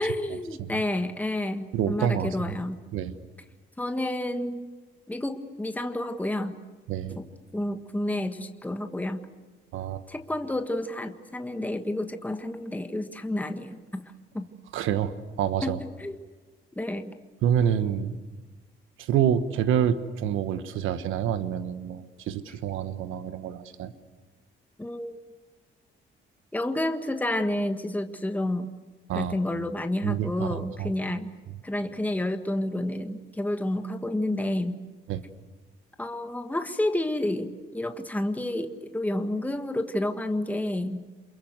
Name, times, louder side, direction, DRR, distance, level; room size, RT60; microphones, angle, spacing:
voice 1, 0.0-2.8 3.8-4.7 5.1-6.5 7.2-7.3 7.5-9.2 10.1-14.0 14.3-14.5 15.6-16.2 16.8-17.1 24.8-25.2 26.5-28.7 29.1-31.3 31.6-34.8 36.0-41.0, left 1 dB, 10° left, 7 dB, 1.6 m, -30 dB
voice 2, 1.7-2.6 2.9-3.1 6.9-7.2 9.7-10.0 14.7-15.8 17.4-18.2 19.0-23.9 29.1-29.4 30.0-30.9 35.1-35.2, right 9 dB, 85° right, 11 dB, 1.3 m, -27 dB
28.0 x 22.5 x 8.0 m, 1.3 s
cardioid pair, 90°, 20 cm